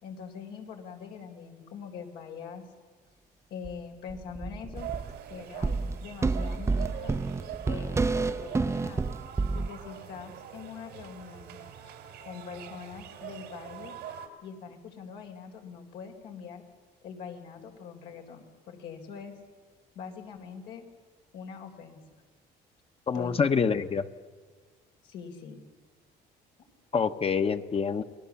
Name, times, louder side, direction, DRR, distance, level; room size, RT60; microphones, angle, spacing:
voice 1, 0.0-2.6 3.5-4.9 5.3-7.1 7.7-9.1 9.5-11.6 12.2-13.9 14.4-16.6 17.0-19.3 19.9-20.8 21.3-22.0 23.1-23.6 25.0-25.6, left 6 dB, 85° left, 2 dB, 3.9 m, -43 dB
sound 1, 3.6-3.7 4.1-5.2 5.6-9.7, right 3 dB, 15° right, 0.6 m, -29 dB
sound 2, 4.7-14.3, right 10 dB, 90° right, 2.8 m, -43 dB
voice 2, 23.1-24.1 26.9-28.0, left 6 dB, 35° left, 9 dB, 1.1 m, -26 dB
29.5 x 20.0 x 7.2 m, 1.5 s
cardioid pair, 110°, 17 cm